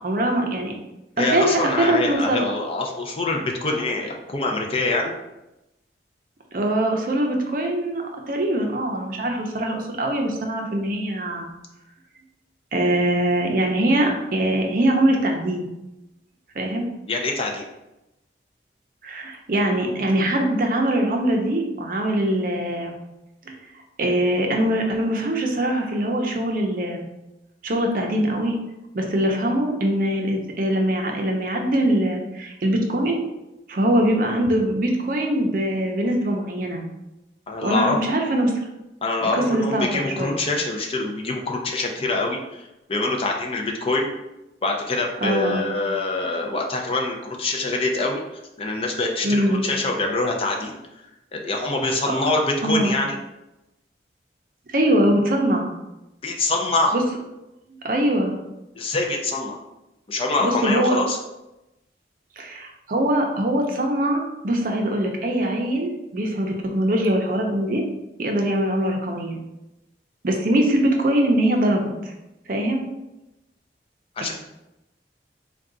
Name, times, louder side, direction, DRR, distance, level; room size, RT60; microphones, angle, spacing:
voice 1, 0.0-0.7 1.2-2.4 6.5-8.0 8.3-11.5 12.7-15.7 16.6-16.9 19.0-22.9 23.5-23.6 24.0-27.0 27.6-28.6 28.9-33.2 33.7-36.8 37.6-38.6 39.2-40.3 45.2-45.7 49.2-49.6 52.1-52.2 52.6-52.9 54.7-55.7 56.9-57.0 57.7-58.3 60.4-61.0 62.4-67.8 68.2-69.4 70.2-72.1 72.5-72.8, right 1 dB, 50° right, 2 dB, 0.5 m, -22 dB
voice 2, 1.2-5.1 17.1-17.6 37.5-38.0 39.0-44.1 44.6-48.2 48.6-50.8 51.3-53.2 56.2-56.9 58.7-59.6 60.1-61.2 74.2-74.3, left 2 dB, 30° left, 1 dB, 0.5 m, -25 dB
3.7 x 2.3 x 3.7 m, 0.95 s
head